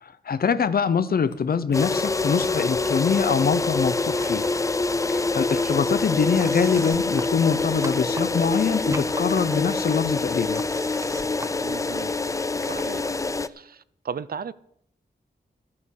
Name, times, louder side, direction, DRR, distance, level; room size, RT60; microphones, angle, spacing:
voice 1, 0.0-4.4 5.1-10.6, left 6 dB, 60° left, 0.7 m, -24 dB
Computer keyboard, 1.3-2.8 3.2-3.6 3.9-4.0 4.2-5.8 6.6-7.1 7.9-9.0 9.4-11.2 12.0-13.2, left 5 dB, 80° left, 1.8 m, -50 dB
sound 1, 1.7-13.5, left 3 dB, 20° left, 0.4 m, -25 dB
sound 2, 3.8-4.6 4.9-12.4, right 2 dB, 15° right, 0.7 m, -42 dB
voice 2, 5.4-5.8 11.6-12.1 12.6-13.1 13.5-14.5, right 7 dB, 60° right, 0.5 m, -36 dB
13.5 x 8.6 x 6.5 m
wide cardioid pair, 155°, 18 cm